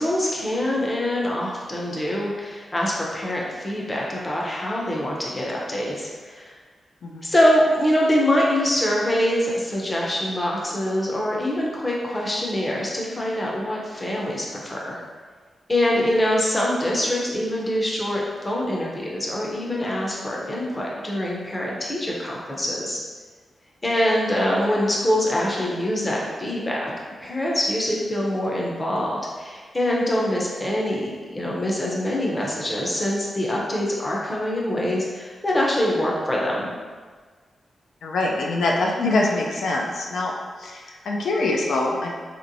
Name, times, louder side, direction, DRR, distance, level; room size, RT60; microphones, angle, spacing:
voice 1, 0.0-6.5 7.2-15.0 15.7-23.0 23.8-26.9 27.2-36.7, left 1 dB, 20° left, -3 dB, 0.6 m, -24 dB
voice 2, 38.0-40.3 40.6-42.1, left 2 dB, 90° left, -1 dB, 0.4 m, -24 dB
3.0 x 2.9 x 2.6 m, 1.5 s
wide cardioid pair, 125°, 0 cm